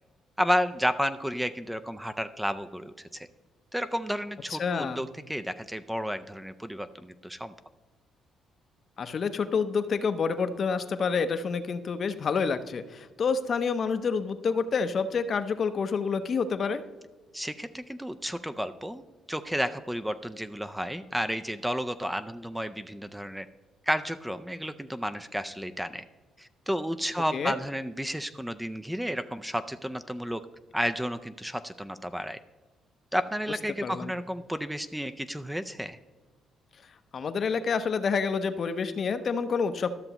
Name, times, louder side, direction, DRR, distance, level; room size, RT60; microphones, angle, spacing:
voice 1, 0.4-3.3 3.7-7.5 17.3-19.0 19.3-23.5 23.9-26.0 26.4-30.4 30.7-32.4 33.1-36.0, equal, 5° right, 11 dB, 0.4 m, -32 dB
voice 2, 4.5-5.0 9.0-16.9 27.3-27.5 33.8-34.1 37.1-39.9, left 5 dB, 50° left, 10 dB, 0.6 m, -28 dB
12.5 x 6.7 x 2.9 m, 1.3 s
cardioid pair, 90°, 0 cm